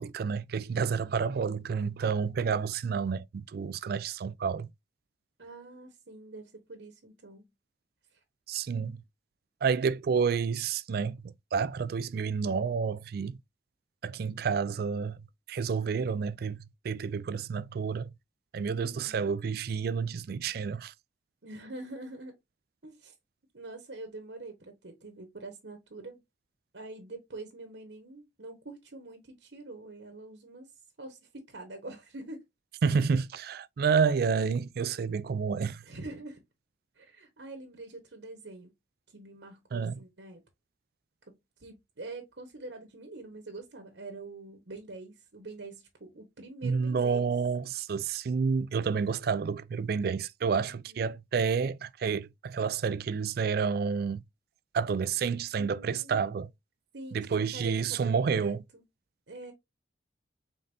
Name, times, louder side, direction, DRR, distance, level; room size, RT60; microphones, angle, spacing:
voice 1, 0.0-4.7 8.5-9.0 9.6-13.4 14.0-15.2 15.5-16.6 16.8-18.1 18.5-20.9 32.8-35.8 39.7-40.0 46.6-54.2 54.7-56.5 57.1-58.6, right 5 dB, 55° right, 0.3 m, -29 dB
voice 2, 0.8-1.2 5.4-7.5 8.1-8.2 18.8-19.2 21.4-22.4 22.8-23.1 23.5-26.2 26.7-30.7 31.0-31.2 31.5-32.4 35.8-36.4 37.0-38.7 39.1-40.4 41.3-47.3 50.6-51.1 55.6-56.4 56.9-58.8 59.3-59.5, right 2 dB, 75° right, 1.2 m, -45 dB
5.2 x 3.9 x 2.6 m
head